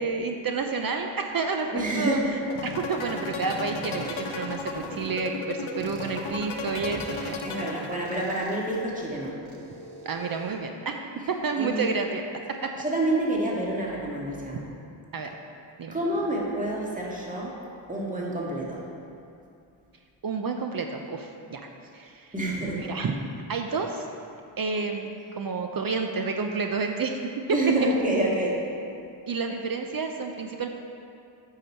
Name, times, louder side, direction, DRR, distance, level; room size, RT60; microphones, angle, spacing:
voice 1, 0.0-2.2 2.6-7.4 7.7-7.8 10.0-11.0 11.4-12.2 12.6-12.7 15.1-15.3 15.8-16.0 20.2-21.6 21.9-22.3 22.8-23.1 23.5-24.1 24.6-27.2 27.8-27.9 29.3-30.7, right 4 dB, 45° right, 4 dB, 0.7 m, -30 dB
voice 2, 1.7-2.3 7.4-9.4 11.6-11.8 12.8-14.6 15.9-17.6 17.9-18.9 22.3-22.9 27.5-28.6, right 1 dB, 15° right, -4 dB, 1.8 m, -28 dB
sound 1, 2.4-8.4, left 5 dB, 75° left, 0.9 m, -35 dB
sound 2, 2.5-5.1 5.8-10.5, right 4 dB, 75° right, 1.1 m, -43 dB
8.8 x 5.7 x 4.4 m, 2.5 s
cardioid pair, 60°, 49 cm